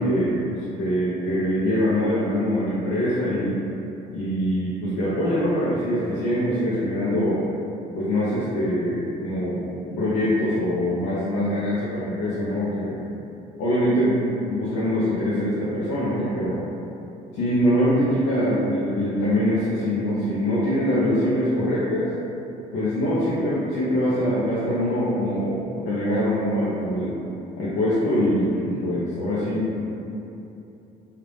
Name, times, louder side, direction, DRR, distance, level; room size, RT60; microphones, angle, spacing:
voice 1, 0.0-3.6 4.1-7.4 7.9-13.0 13.6-16.6 17.3-22.1 22.7-27.2 27.6-29.9, equal, 85° left, -10 dB, 0.7 m, -23 dB
3.3 x 2.4 x 3.3 m, 2.8 s
cardioid pair, 110°, 17 cm